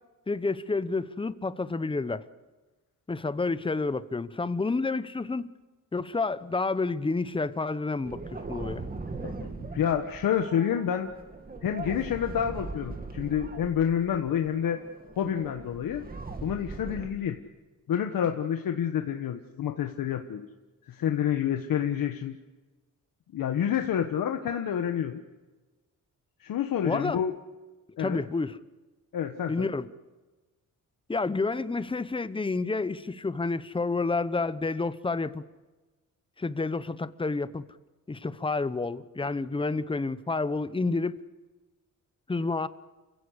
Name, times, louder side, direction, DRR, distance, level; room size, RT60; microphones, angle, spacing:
voice 1, 0.3-2.3 3.1-5.5 5.9-8.9 26.8-27.2 28.0-28.6 29.5-29.9 31.1-35.4 36.4-37.6 38.1-41.2 42.3-42.7, left 3 dB, 15° left, 0.8 m, -29 dB
sound 1, 8.0-17.1, right 3 dB, 25° right, 2.1 m, -40 dB
voice 2, 9.2-11.1 11.6-14.8 15.2-16.0 16.4-17.4 17.9-20.5 20.9-22.4 23.3-25.2 26.4-27.3 28.0-28.2 29.1-29.7, left 9 dB, 85° left, 1.4 m, -28 dB
29.0 x 16.5 x 8.1 m
wide cardioid pair, 130°, 33 cm